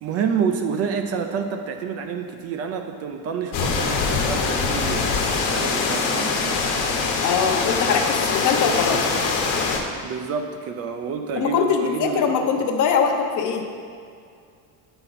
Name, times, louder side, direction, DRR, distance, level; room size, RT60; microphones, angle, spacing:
voice 1, 0.0-6.6 10.0-12.7, right 6 dB, 40° right, 6 dB, 0.4 m, -28 dB
sound 1, 3.5-9.8, left 4 dB, 80° left, 1.2 m, -23 dB
voice 2, 7.2-9.1 11.4-13.6, left 6 dB, 50° left, 4 dB, 0.8 m, -22 dB
8.8 x 5.9 x 4.1 m, 2.2 s
cardioid pair, 170°, 39 cm